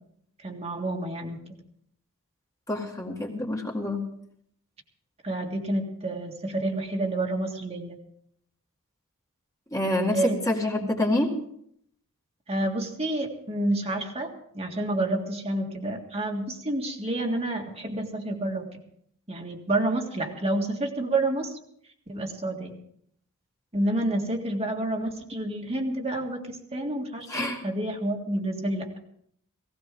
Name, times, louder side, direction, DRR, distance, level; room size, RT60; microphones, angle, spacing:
voice 1, 0.4-1.6 5.2-8.0 10.1-10.4 10.8-10.9 12.5-18.7 19.3-21.5 22.1-22.7 23.7-28.9, right 1 dB, 30° right, 1 dB, 1.9 m, -29 dB
voice 2, 2.7-4.0 9.7-10.2 10.5-11.3 27.3-27.6, left 1 dB, 15° left, 0 dB, 2.0 m, -27 dB
17.5 x 17.0 x 3.8 m, 0.68 s
head